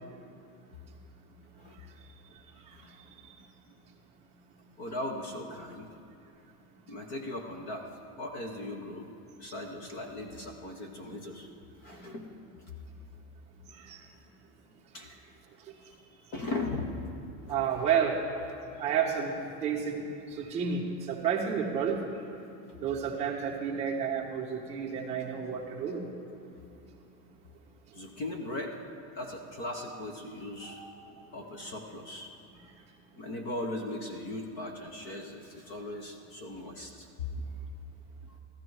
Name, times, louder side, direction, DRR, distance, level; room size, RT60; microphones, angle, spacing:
voice 1, 4.8-5.9 6.9-7.9 8.2-9.1 9.4-11.5 11.8-12.3 14.9-15.1 16.3-17.1 17.5-17.6 27.9-28.8 29.1-30.8 31.3-32.3 33.2-37.1 38.2-38.4, left 1 dB, 20° left, 4 dB, 0.5 m, -38 dB
voice 2, 17.5-18.2 18.8-19.3 19.6-20.0 20.3-22.0 22.8-26.0 30.6-30.9, right 7 dB, 15° right, -5 dB, 1.4 m, -30 dB
14.5 x 13.0 x 4.6 m, 2.7 s
supercardioid pair, 175°, 45 cm